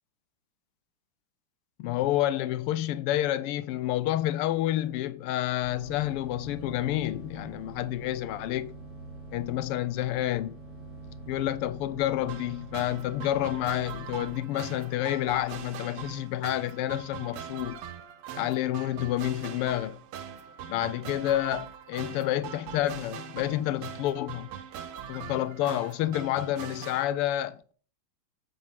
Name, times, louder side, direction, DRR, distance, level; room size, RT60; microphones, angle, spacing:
voice 1, 1.8-8.7 9.3-10.6 11.3-17.8 18.4-20.0 20.7-24.5 25.1-27.7, left 13 dB, 90° left, 1.6 m, -29 dB
sound 1, 5.6-14.4, right 2 dB, 5° left, 4.3 m, -45 dB
sound 2, 12.3-27.0, right 8 dB, 85° right, 1.9 m, -42 dB
7.9 x 7.2 x 5.8 m
omnidirectional pair, 2.4 m